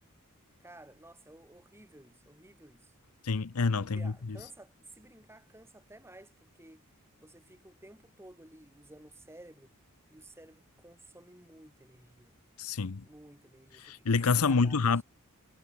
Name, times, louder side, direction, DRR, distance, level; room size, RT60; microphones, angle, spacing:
voice 1, 0.6-2.9 3.8-6.8 7.2-9.7 10.1-12.3 13.0-14.8, right 1 dB, 10° right, 4.1 m, -54 dB
voice 2, 3.2-4.4 12.6-13.0 13.8-15.0, left 4 dB, 75° left, 0.8 m, -27 dB
head